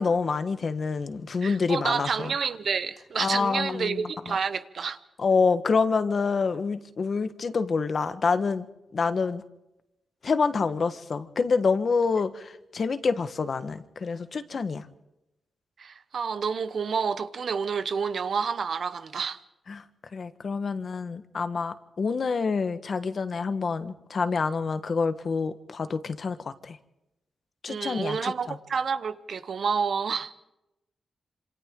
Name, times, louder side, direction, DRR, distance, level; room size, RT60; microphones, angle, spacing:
voice 1, 0.0-2.3 3.2-4.4 5.2-8.6 8.9-9.4 10.2-14.8 19.7-19.8 20.1-26.8 27.6-28.6, left 4 dB, 50° left, 1.3 m, -27 dB
voice 2, 1.4-5.0 15.8-19.4 27.7-30.3, right 6 dB, 60° right, 1.0 m, -29 dB
27.0 x 26.5 x 3.8 m
cardioid pair, 95°, 0 cm